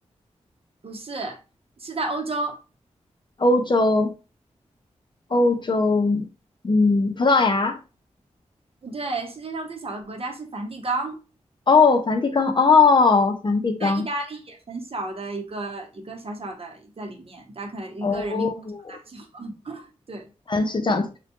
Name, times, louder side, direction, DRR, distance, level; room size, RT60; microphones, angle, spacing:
voice 1, 0.8-1.4 1.8-2.6 8.8-11.2 13.8-18.5 18.9-20.3, right 2 dB, 50° right, 0.7 m, -32 dB
voice 2, 3.4-4.1 5.3-6.2 6.6-7.8 11.7-14.1 18.0-18.8 20.5-21.1, left 4 dB, 40° left, 0.5 m, -19 dB
2.2 x 2.1 x 2.9 m
cardioid pair, 40°, 13 cm